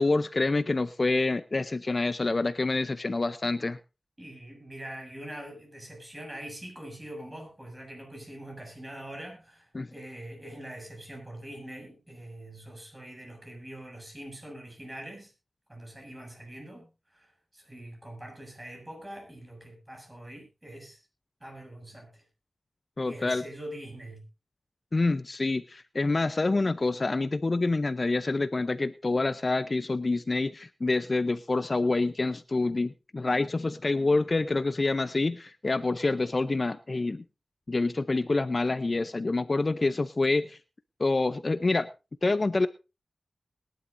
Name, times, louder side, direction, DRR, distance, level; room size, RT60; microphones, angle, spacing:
voice 1, 0.0-3.8 9.7-9.9 23.0-23.4 24.9-37.2 37.7-40.6 41.0-41.9 42.2-42.7, left 3 dB, 45° left, 13 dB, 0.6 m, -27 dB
voice 2, 4.2-15.3 15.7-21.0 21.4-22.2 23.1-24.2, right 1 dB, 20° right, 2 dB, 7.2 m, -43 dB
21.0 x 11.5 x 2.6 m, 0.28 s
wide cardioid pair, 70°, 0 cm